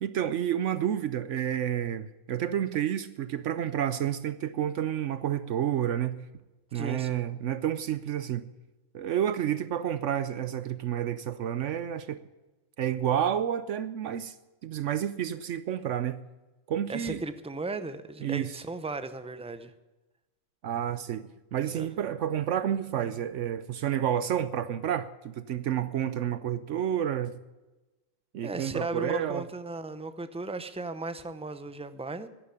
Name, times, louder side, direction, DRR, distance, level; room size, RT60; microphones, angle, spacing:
voice 1, 0.0-6.2 6.7-8.5 8.9-12.2 12.8-14.3 14.6-16.2 16.7-17.2 18.2-18.5 20.6-27.4 28.3-29.5, right 10 dB, 70° right, 0.9 m, -30 dB
voice 2, 6.7-7.2 16.9-19.7 21.7-21.9 28.4-32.3, right 3 dB, 10° right, 0.4 m, -36 dB
11.0 x 10.0 x 9.7 m
omnidirectional pair, 1.4 m